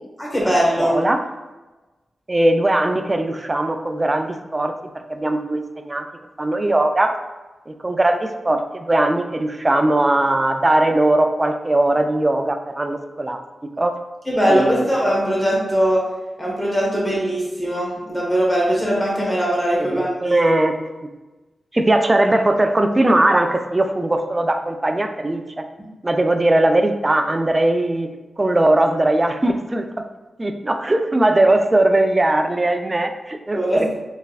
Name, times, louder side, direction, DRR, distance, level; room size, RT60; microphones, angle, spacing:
voice 1, 0.2-1.0 14.3-16.0 16.4-20.5 33.5-33.9, equal, 20° left, -4 dB, 1.4 m, -20 dB
voice 2, 0.8-1.2 2.3-4.7 5.1-6.0 6.4-7.1 7.7-13.4 13.8-13.9 14.5-14.9 19.8-20.8 21.7-25.6 26.0-28.1 28.4-29.8 30.4-33.9, right 1 dB, 30° right, 6 dB, 0.4 m, -19 dB
3.3 x 3.2 x 2.4 m, 1.1 s
cardioid pair, 40°, 0 cm